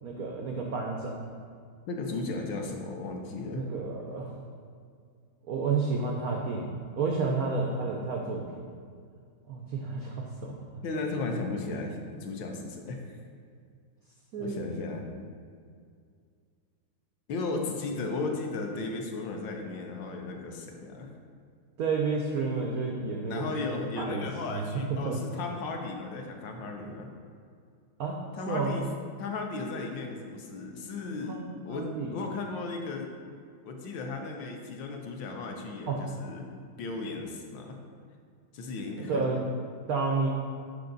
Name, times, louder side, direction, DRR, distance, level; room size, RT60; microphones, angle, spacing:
voice 1, 0.0-1.2 3.5-4.3 5.5-8.6 9.5-10.5 14.3-14.7 21.8-23.5 24.0-24.2 24.5-24.6 24.9-25.2 28.0-28.2 28.5-28.8 31.3-32.2 35.9-36.0 39.0-39.4 39.9-40.3, right 4 dB, 90° right, 0 dB, 0.7 m, -31 dB
voice 2, 1.9-3.6 10.8-13.2 14.4-15.0 17.3-21.1 23.3-27.1 28.4-28.9 29.2-33.1 33.6-36.5 36.8-37.8 38.5-39.3, left 3 dB, 65° left, 3 dB, 1.3 m, -35 dB
6.9 x 5.9 x 3.9 m, 2.2 s
omnidirectional pair, 2.4 m